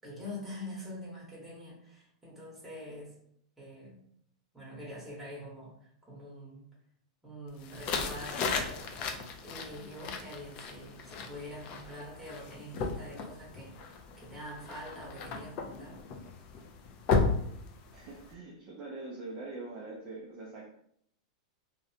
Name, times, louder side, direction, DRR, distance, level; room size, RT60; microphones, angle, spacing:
voice 1, 0.0-3.2 3.6-4.0 4.5-6.7 7.2-16.0, left 1 dB, 5° right, -6 dB, 1.0 m, -45 dB
sound 1, 7.6-18.3, left 4 dB, 35° left, 0.3 m, -35 dB
voice 2, 17.9-20.7, right 2 dB, 30° right, -3 dB, 0.4 m, -43 dB
2.5 x 2.0 x 2.7 m, 0.67 s
supercardioid pair, 150°, 3 cm